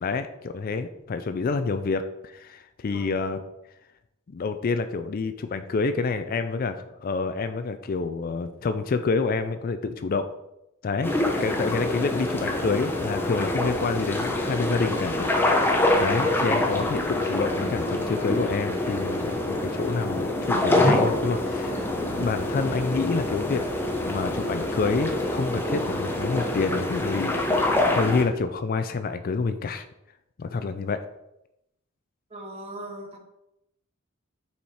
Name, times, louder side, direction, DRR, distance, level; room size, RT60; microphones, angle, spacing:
voice 1, 0.0-3.4 4.3-10.3 10.8-21.8 22.1-23.6 24.0-29.9 30.4-31.1, left 4 dB, 45° left, 10 dB, 0.4 m, -28 dB
voice 2, 2.9-3.4 11.8-12.4 32.3-33.2, right 1 dB, 30° right, 2 dB, 1.2 m, -41 dB
sound 1, 11.0-28.2, left 1 dB, 10° left, 0.8 m, -25 dB
5.7 x 4.7 x 4.3 m, 0.86 s
head